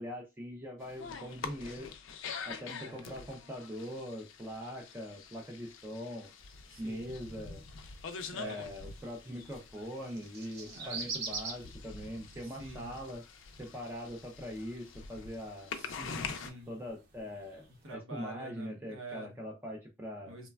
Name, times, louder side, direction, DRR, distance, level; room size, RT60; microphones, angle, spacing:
voice 1, 0.0-1.9 2.4-6.3 6.8-7.6 8.3-13.2 13.6-15.7 16.7-20.4, equal, 10° right, 0.3 m, -42 dB
sound 1, 0.8-16.5, left 5 dB, 70° left, 0.4 m, -45 dB
voice 2, 2.7-3.3 6.7-7.0 8.2-8.7 10.7-11.0 12.4-13.0 15.7-16.8 17.8-19.4 20.3-20.5, right 2 dB, 90° right, 0.8 m, -47 dB
sound 2, 6.4-17.9, right 4 dB, 55° right, 0.8 m, -48 dB
3.0 x 2.2 x 2.2 m
head